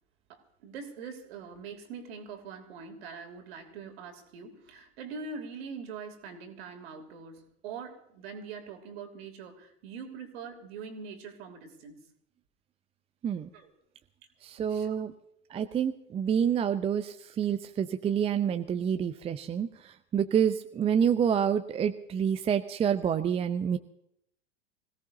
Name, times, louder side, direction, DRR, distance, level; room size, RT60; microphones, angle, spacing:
voice 1, 0.3-12.1 13.5-13.7 14.6-14.9, right 5 dB, 55° right, 5 dB, 3.0 m, -43 dB
voice 2, 14.4-15.1 15.5-23.8, right 8 dB, 15° right, 9 dB, 0.6 m, -28 dB
25.0 x 17.0 x 2.8 m, 0.75 s
figure-of-eight pair, 85°, 36 cm